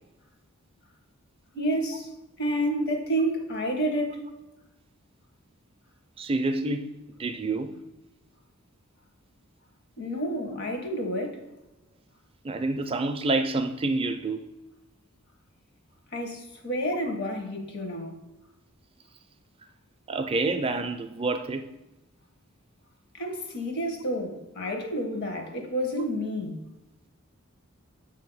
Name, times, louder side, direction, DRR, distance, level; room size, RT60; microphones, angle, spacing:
voice 1, 1.5-2.1 2.4-4.3 10.0-11.5 16.1-18.2 23.1-26.6, equal, 50° left, 1.1 m, -29 dB
voice 2, 6.2-6.9 7.2-7.7 12.4-14.4 20.1-21.7, right 3 dB, 25° right, 0.3 m, -28 dB
7.2 x 2.8 x 5.3 m
head